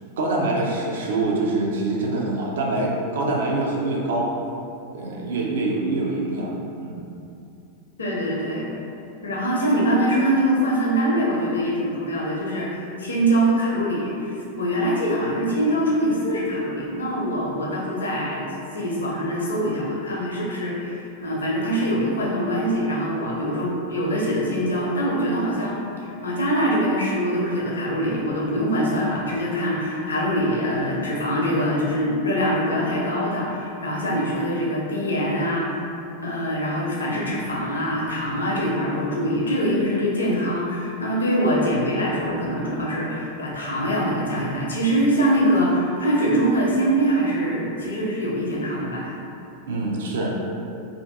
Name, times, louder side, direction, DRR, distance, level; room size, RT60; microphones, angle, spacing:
voice 1, 0.2-4.3 4.9-6.5 6.8-7.0 49.7-50.3, right 2 dB, 60° right, -2 dB, 0.4 m, -25 dB
voice 2, 8.0-8.7 9.2-18.4 18.7-35.8 36.2-49.2, equal, 70° left, -4 dB, 0.6 m, -23 dB
2.6 x 2.5 x 3.4 m, 2.7 s
figure-of-eight pair, 90°, 0 cm